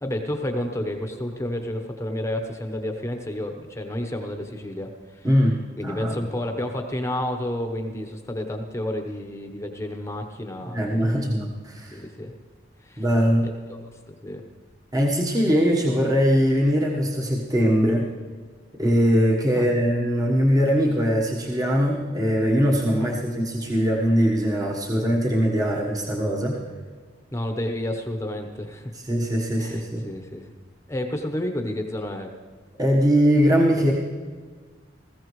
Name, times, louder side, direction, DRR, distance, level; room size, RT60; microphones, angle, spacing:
voice 1, 0.0-5.3 5.8-11.3 11.9-12.3 12.8-13.0 13.4-13.8 14.1-14.4 19.5-19.7 23.0-23.2 27.3-28.9 29.6-30.5 30.9-32.3, left 1 dB, 15° left, 5 dB, 1.0 m, -30 dB
voice 2, 5.2-5.6 5.8-6.2 10.6-12.0 13.0-13.5 14.9-18.1 18.8-26.6 28.9-30.0 32.8-33.9, equal, 20° right, -2 dB, 1.2 m, -21 dB
20.0 x 15.0 x 3.2 m, 1.5 s
head